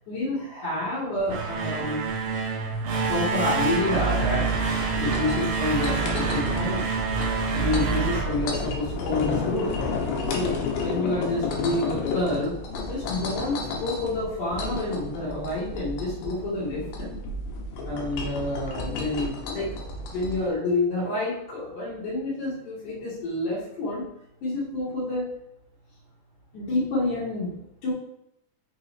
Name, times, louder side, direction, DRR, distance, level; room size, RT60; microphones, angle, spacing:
voice 1, 0.1-2.0 3.1-4.4 5.0-6.8 7.6-9.8 10.3-10.5 10.8-12.5 12.9-17.1 17.9-24.0 24.4-25.3 26.5-27.9, left 2 dB, 60° left, -9 dB, 2.7 m, -28 dB
sound 1, 1.2-9.1, right 5 dB, 75° right, 1.6 m, -27 dB
sound 2, 1.3-20.5, left 3 dB, 85° left, 2.9 m, -32 dB
6.0 x 4.8 x 3.2 m, 0.80 s
omnidirectional pair, 4.3 m